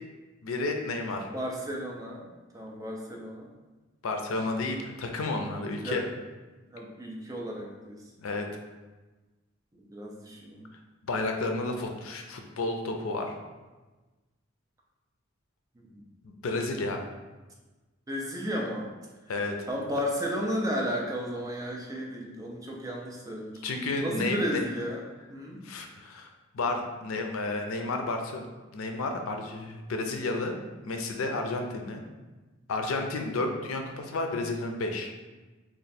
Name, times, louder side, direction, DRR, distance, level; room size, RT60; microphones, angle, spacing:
voice 1, 0.4-1.3 4.0-6.0 8.2-8.5 11.0-13.3 16.2-17.0 19.3-19.5 23.6-24.6 25.6-26.3 26.5-28.5 28.7-30.6 30.8-32.0 32.7-35.1, left 2 dB, 85° left, 4 dB, 0.5 m, -31 dB
voice 2, 1.3-2.3 2.5-3.5 5.8-6.0 6.7-8.0 9.8-10.6 15.8-16.0 18.1-18.9 19.7-23.6 24.0-25.0 25.3-25.6, equal, 15° right, -1 dB, 0.5 m, -33 dB
3.1 x 2.4 x 4.1 m, 1.2 s
head